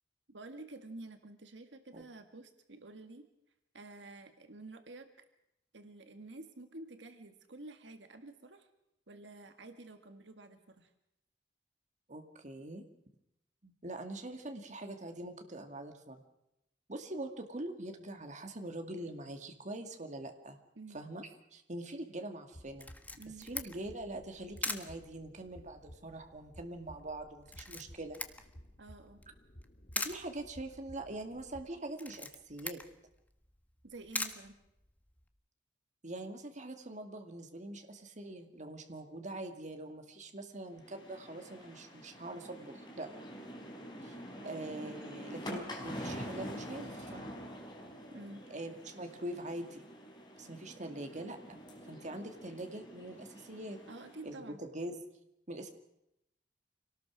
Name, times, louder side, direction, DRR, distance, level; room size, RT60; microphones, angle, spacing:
voice 1, 0.3-3.3 3.7-5.3 5.7-8.7 9.1-10.9 20.8-21.0 23.2-23.5 28.8-29.2 33.8-34.6 44.4-44.9 48.1-48.5 53.9-54.6, right 2 dB, 75° right, 7 dB, 1.8 m, -50 dB
voice 2, 12.1-12.8 13.6-16.2 16.9-20.6 20.9-22.9 23.4-28.2 30.0-32.8 36.0-43.1 44.0-44.2 44.4-47.3 48.5-49.8 50.4-51.6 51.9-53.8 54.2-55.0 55.5-55.7, right 1 dB, 45° right, 5 dB, 2.3 m, -43 dB
sound 1, 22.5-31.7, equal, 40° left, 1.8 m, -56 dB
Camera, 22.8-35.3, left 2 dB, 10° left, 1.5 m, -44 dB
sound 2, 40.8-54.3, equal, 25° left, 5.0 m, -46 dB
26.0 x 19.0 x 6.4 m, 0.84 s
head